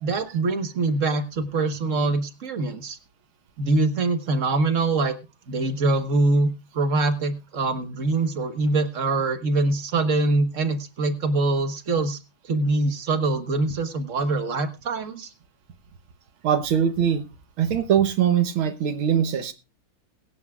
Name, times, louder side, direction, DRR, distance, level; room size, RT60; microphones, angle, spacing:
voice 1, 0.0-3.0 3.6-5.1 5.5-6.5 6.7-12.2 12.4-15.3, right 3 dB, 40° right, 8 dB, 1.5 m, -24 dB
voice 2, 16.4-17.2 17.6-19.5, right 9 dB, 80° right, 9 dB, 2.0 m, -22 dB
22.0 x 9.7 x 2.4 m, 0.28 s
omnidirectional pair, 2.3 m